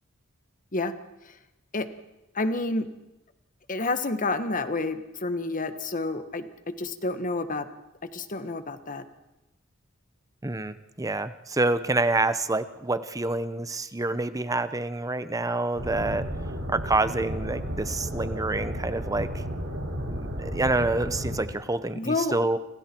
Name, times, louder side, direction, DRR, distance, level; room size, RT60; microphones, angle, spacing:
voice 1, 2.3-2.9 3.7-7.7 8.0-9.0 21.9-22.4, left 2 dB, 40° left, 10 dB, 1.4 m, -29 dB
voice 2, 10.4-16.3 16.7-19.3 20.1-22.6, right 2 dB, 15° right, 12 dB, 0.8 m, -27 dB
sound 1, 15.7-21.4, equal, 75° right, 6.2 m, -33 dB
29.5 x 26.5 x 4.6 m, 0.97 s
head